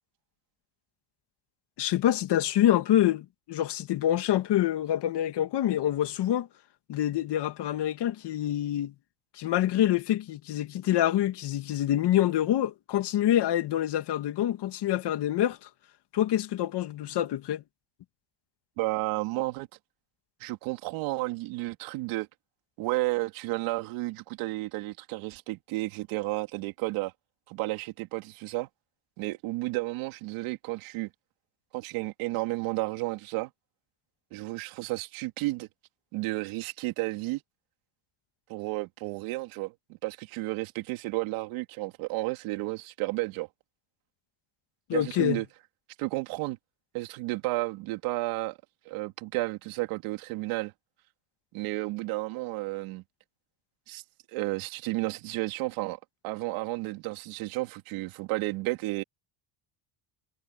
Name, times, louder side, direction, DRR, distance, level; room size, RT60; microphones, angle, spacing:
voice 1, 1.8-6.5 6.9-8.9 9.4-15.7 16.1-17.6 44.9-45.4, left 12 dB, 55° left, 2.2 m, -26 dB
voice 2, 18.8-19.7 20.4-22.3 22.8-27.1 27.5-28.7 29.2-31.1 31.7-33.5 34.3-35.7 36.1-37.4 38.5-43.5 44.9-45.4 46.0-46.6 46.9-48.6 48.8-50.7 51.5-53.0 53.9-54.0 54.3-59.0, right 21 dB, 90° right, 3.2 m, -32 dB
cardioid pair, 120°, 47 cm